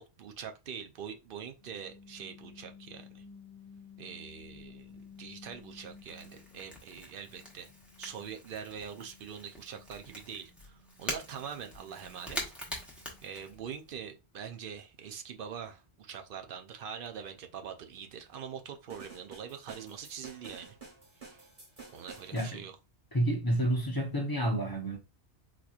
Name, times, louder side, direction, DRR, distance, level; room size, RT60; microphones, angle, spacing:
voice 1, 0.0-3.2 4.0-7.7 8.0-12.5 12.8-20.8 21.2-21.4 21.9-22.8, right 7 dB, 60° right, 0.7 m, -44 dB
sound 1, 1.6-6.8 7.2-13.4, left 6 dB, 40° left, 1.1 m, -55 dB
Crackle / Crack, 4.4-14.0, equal, ahead, 1.0 m, -45 dB
sound 2, 18.9-22.6, right 4 dB, 30° right, 1.5 m, -50 dB
voice 2, 23.1-25.0, right 1 dB, 25° left, 0.7 m, -29 dB
4.1 x 2.9 x 2.4 m
omnidirectional pair, 1.2 m